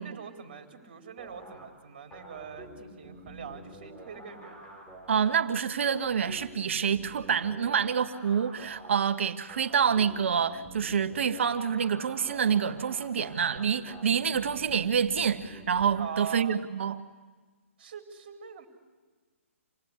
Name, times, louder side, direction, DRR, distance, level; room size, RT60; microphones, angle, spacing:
voice 1, 0.0-4.6 16.0-16.6 17.8-18.7, right 7 dB, 45° right, 4 dB, 4.2 m, -42 dB
sound 1, 1.2-15.9, right 1 dB, 10° left, 5.4 m, -48 dB
voice 2, 5.1-17.0, right 7 dB, 60° right, 9 dB, 1.7 m, -27 dB
28.0 x 19.0 x 9.8 m, 1.4 s
hypercardioid pair, 150°, 8 cm